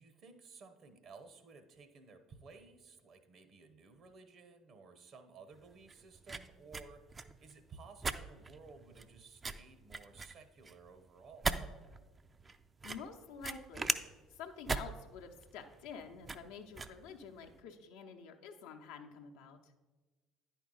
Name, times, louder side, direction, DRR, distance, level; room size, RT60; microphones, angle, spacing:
voice 1, 0.0-11.6, right 4 dB, 55° right, 9 dB, 0.9 m, -56 dB
sound 1, 5.5-17.6, right 4 dB, 30° right, 0.4 m, -41 dB
voice 2, 12.8-13.9 14.3-19.6, left 6 dB, 75° left, 3 dB, 0.7 m, -49 dB
10.0 x 4.6 x 3.9 m, 1.3 s
hypercardioid pair, 60°, 0 cm